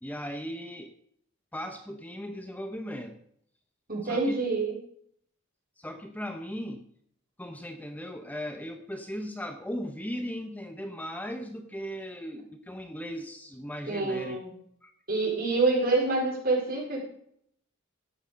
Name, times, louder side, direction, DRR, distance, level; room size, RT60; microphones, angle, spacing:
voice 1, 0.0-0.9 1.5-3.2 4.0-4.4 5.8-6.9 7.4-14.4 14.8-14.9, equal, 10° left, 6 dB, 0.8 m, -37 dB
voice 2, 3.9-4.8 13.9-14.5 15.1-17.0, right 3 dB, 50° right, -1 dB, 4.7 m, -27 dB
12.5 x 9.0 x 5.2 m, 0.67 s
head